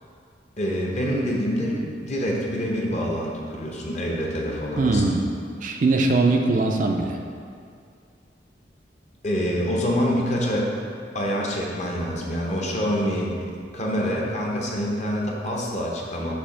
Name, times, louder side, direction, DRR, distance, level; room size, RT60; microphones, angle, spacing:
voice 1, 0.6-5.2 9.2-10.7 11.1-16.3, equal, 40° left, -2 dB, 0.9 m, -26 dB
voice 2, 4.8-5.3 5.6-7.2, right 3 dB, 45° right, 2 dB, 0.4 m, -21 dB
6.8 x 2.9 x 5.6 m, 2.3 s
head